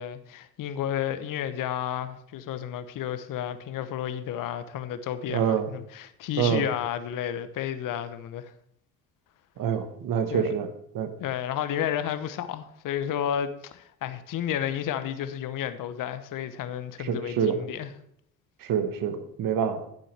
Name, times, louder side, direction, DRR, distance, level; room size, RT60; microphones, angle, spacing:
voice 1, 0.0-8.5 10.3-10.5 11.2-17.9, left 10 dB, 50° left, 0.9 m, -32 dB
voice 2, 5.3-5.7 6.4-6.6 9.6-10.7 10.9-11.1 17.0-17.6 18.6-19.9, right 7 dB, 55° right, 1.4 m, -26 dB
11.5 x 8.9 x 3.3 m
hypercardioid pair, 55°, 40 cm